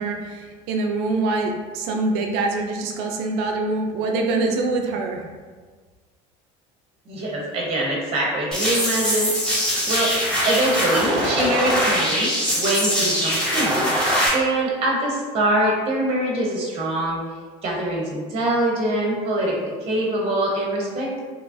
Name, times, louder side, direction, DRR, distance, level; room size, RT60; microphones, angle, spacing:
voice 1, 0.0-5.3, right 3 dB, 75° right, 2 dB, 0.4 m, -24 dB
voice 2, 7.1-13.8 14.3-17.2 17.6-21.2, right 1 dB, 35° right, -3 dB, 0.8 m, -24 dB
sound 1, 8.5-14.3, equal, 5° left, 1.1 m, -22 dB
2.8 x 2.3 x 2.5 m, 1.5 s
supercardioid pair, 100°, 17 cm